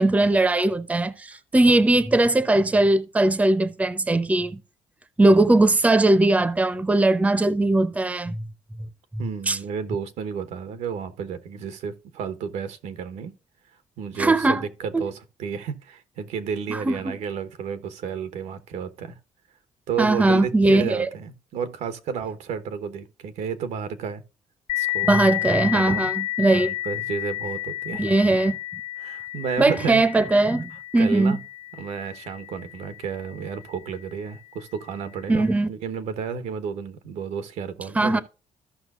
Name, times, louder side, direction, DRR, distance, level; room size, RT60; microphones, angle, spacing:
voice 1, 0.0-4.6 5.2-8.4 9.1-9.6 14.2-14.6 14.9-15.0 16.7-17.2 20.0-21.1 25.0-26.8 28.0-28.6 29.6-31.4 35.3-35.7 37.9-38.2, right 2 dB, 10° right, 0.7 m, -20 dB
voice 2, 9.2-13.3 14.0-19.2 19.9-24.2 24.8-25.1 25.7-26.1 26.8-28.0 29.0-30.0 31.0-31.4 31.8-38.2, right 6 dB, 85° right, 1.1 m, -32 dB
sound 1, 24.7-33.9, left 16 dB, 75° left, 0.4 m, -31 dB
14.0 x 5.7 x 2.5 m
cardioid pair, 110°, 12 cm